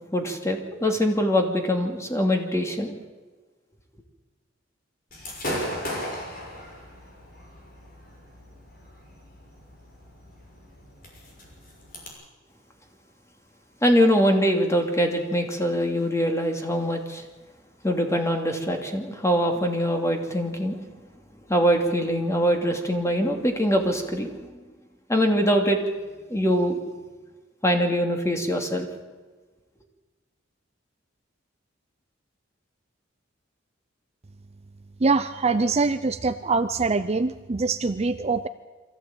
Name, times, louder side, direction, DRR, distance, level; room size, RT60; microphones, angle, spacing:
voice 1, 0.1-2.9 13.8-17.2 17.8-20.8 21.5-24.5 25.1-25.8 26.3-26.8 27.6-28.9, equal, 15° left, 3 dB, 2.7 m, -23 dB
Gunshot gunfire / Fireworks, 5.1-12.1, equal, 50° left, 6.3 m, -37 dB
voice 2, 35.0-38.5, right 4 dB, 35° right, 11 dB, 0.6 m, -24 dB
23.5 x 15.0 x 8.9 m, 1.3 s
head